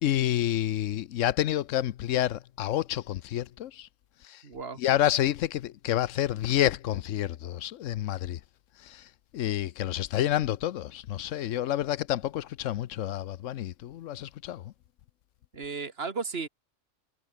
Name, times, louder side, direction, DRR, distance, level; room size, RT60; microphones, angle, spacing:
voice 1, 0.0-3.9 4.2-4.4 4.8-8.4 8.8-9.1 9.3-14.7, left 12 dB, 85° left, 1.0 m, -29 dB
voice 2, 4.4-4.8 15.5-16.5, right 4 dB, 55° right, 1.9 m, -34 dB
omnidirectional pair, 1.3 m